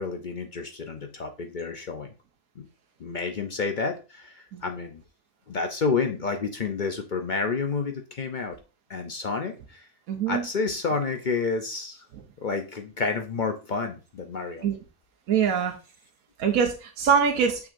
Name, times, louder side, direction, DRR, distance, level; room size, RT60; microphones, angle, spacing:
voice 1, 0.0-2.1 2.6-2.7 3.0-5.0 5.5-8.6 8.9-9.9 10.3-12.0 12.4-14.7, left 4 dB, 55° left, 6 dB, 0.5 m, -30 dB
voice 2, 10.1-10.4 14.6-14.7 15.3-15.7 16.4-17.6, right 7 dB, 70° right, 3 dB, 1.1 m, -23 dB
6.3 x 6.1 x 2.5 m, 0.32 s
omnidirectional pair, 1.5 m